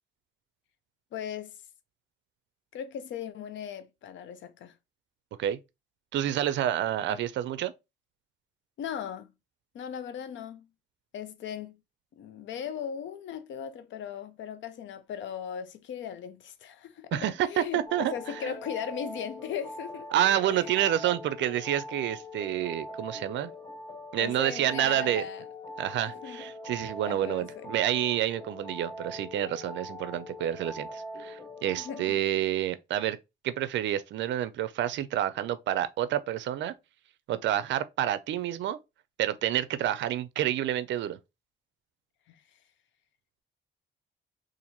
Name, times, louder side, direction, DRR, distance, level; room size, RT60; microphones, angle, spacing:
voice 1, 1.1-1.6 2.7-4.8 7.1-7.2 8.8-9.3 9.7-10.7 11.1-11.8 12.1-20.1 20.5-20.8 24.2-25.4 26.0-26.4 27.1-27.7 31.7-32.2 42.3-42.4, left 8 dB, 70° left, 0.6 m, -38 dB
voice 2, 6.1-7.7 17.1-18.1 18.4-18.5 20.1-23.5 24.1-25.2 25.8-33.2 33.4-36.7 37.3-38.8 39.2-41.2, right 12 dB, 70° right, 0.4 m, -29 dB
sound 1, 17.9-32.1, left 1 dB, 20° left, 0.8 m, -42 dB
2.9 x 2.6 x 4.0 m
cardioid pair, 90°, 20 cm